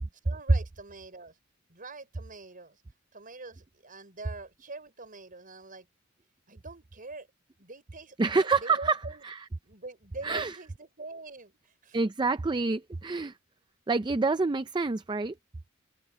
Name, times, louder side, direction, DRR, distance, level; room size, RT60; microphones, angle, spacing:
voice 1, 0.2-1.4 1.7-2.8 3.1-5.9 6.5-7.3 7.6-8.2 8.6-9.2 9.6-12.0, right 3 dB, 40° right, 5.2 m, -44 dB
voice 2, 8.2-9.0 9.2-9.4 10.2-10.5 11.9-13.3 13.9-15.4, right 4 dB, 20° right, 0.4 m, -27 dB
open air
head